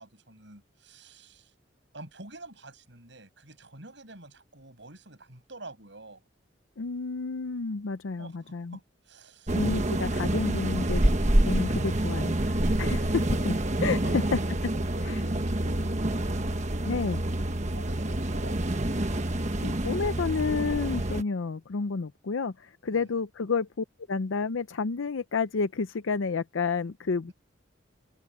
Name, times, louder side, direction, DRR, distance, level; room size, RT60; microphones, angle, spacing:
voice 1, 0.0-1.5 1.9-6.2 8.2-10.1 11.0-11.1 12.8-13.3 14.0-14.4 14.9-16.6 17.5-18.8 22.9-23.1, right 2 dB, 65° right, 7.5 m, -48 dB
voice 2, 6.8-8.8 9.5-11.0 11.5-13.0 13.4-13.5 13.8-14.2 15.0-15.2 16.8-17.2 19.6-27.3, left 4 dB, 90° left, 0.6 m, -30 dB
sound 1, 9.5-21.2, right 1 dB, 40° right, 1.3 m, -27 dB
head